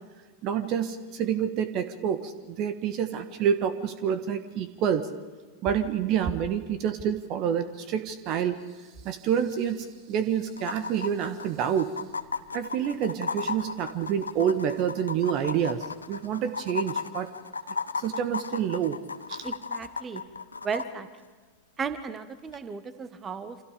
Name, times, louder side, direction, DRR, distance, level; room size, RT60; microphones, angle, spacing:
voice 1, 0.4-5.1 5.6-8.6 9.0-11.9 12.5-17.3 18.0-19.0 19.3-19.4, right 8 dB, 40° right, 11 dB, 1.5 m, -28 dB
sound 1, 9.5-9.6 9.8-9.9 10.6-20.9 22.5-22.6, left 5 dB, 75° left, 1.1 m, -34 dB
voice 2, 19.4-20.2 20.6-21.1 21.8-23.6, right 5 dB, 20° right, 12 dB, 1.7 m, -35 dB
29.0 x 27.0 x 5.3 m, 1.4 s
figure-of-eight pair, 90°, 0 cm